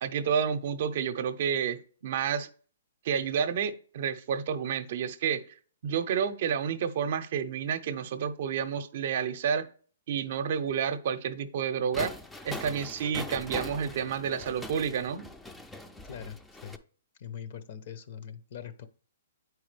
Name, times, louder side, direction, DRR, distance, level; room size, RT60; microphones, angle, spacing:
voice 1, 0.0-2.5 3.0-5.4 5.8-9.7 10.1-12.2 12.4-15.3, right 7 dB, 55° right, 0.6 m, -30 dB
sound 1, 11.9-16.8, left 2 dB, 5° left, 0.4 m, -41 dB
voice 2, 16.0-16.8 17.2-18.9, left 8 dB, 50° left, 0.8 m, -42 dB
8.5 x 4.7 x 3.3 m
hypercardioid pair, 145°, 0 cm